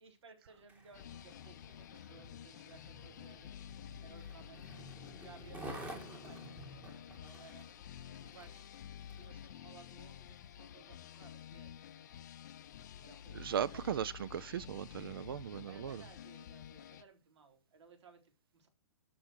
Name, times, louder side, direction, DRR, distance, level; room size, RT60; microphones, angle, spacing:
voice 1, 0.0-7.7 8.2-8.7 9.2-12.2 13.0-14.1 15.7-18.7, right 5 dB, 70° right, 4.0 m, -60 dB
Skateboard, 0.5-9.4 10.0-10.1, right 1 dB, 10° right, 1.5 m, -52 dB
sound 1, 0.9-17.0, left 9 dB, 40° left, 0.6 m, -51 dB
voice 2, 13.4-16.0, right 9 dB, 50° right, 0.5 m, -37 dB
13.0 x 5.8 x 6.5 m
hypercardioid pair, 180°, 15 cm